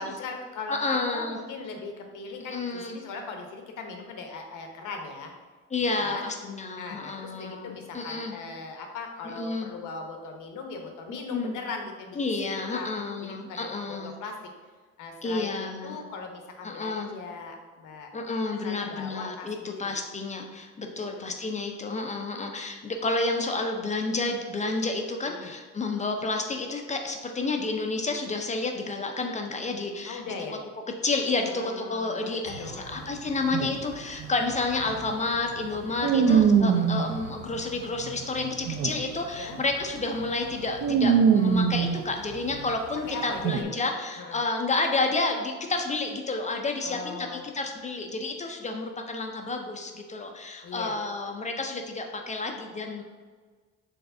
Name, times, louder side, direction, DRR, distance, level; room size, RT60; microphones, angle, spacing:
voice 1, 0.0-5.3 6.0-6.3 6.8-12.9 13.2-14.3 15.0-18.1 18.6-19.9 21.0-21.4 25.3-25.5 30.1-30.6 31.4-33.2 36.0-36.5 39.4-39.6 43.1-43.7 44.2-44.4 46.8-47.5 50.6-50.9, left 4 dB, 55° left, 3 dB, 0.8 m, -39 dB
voice 2, 0.7-1.4 2.5-3.0 5.7-8.3 9.4-9.7 11.3-11.5 12.2-14.1 15.2-16.0 16.6-17.1 18.1-30.2 31.0-53.0, left 3 dB, 20° left, 3 dB, 0.4 m, -30 dB
sound 1, 32.5-39.2 39.5-39.8 40.2-42.7 43.4-43.6, right 6 dB, 45° right, 0.5 m, -24 dB
4.7 x 3.3 x 2.6 m, 1.4 s
hypercardioid pair, 70°, 37 cm